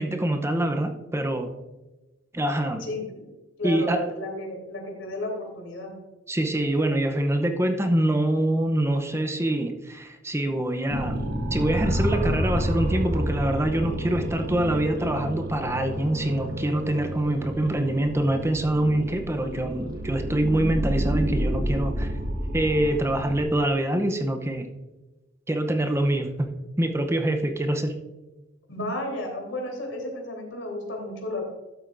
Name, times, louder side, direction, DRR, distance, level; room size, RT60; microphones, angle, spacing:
voice 1, 0.0-1.5 2.3-2.9 3.6-4.1 6.3-11.2 11.5-22.1 22.5-24.7 25.5-26.5 26.8-27.9, right 1 dB, 15° right, 5 dB, 0.7 m, -25 dB
voice 2, 2.8-3.3 3.6-5.9 28.7-31.4, left 1 dB, 85° left, 0 dB, 3.4 m, -33 dB
sound 1, 10.9-23.4, equal, 50° right, 1.6 m, -29 dB
12.5 x 8.0 x 2.6 m, 1.1 s
head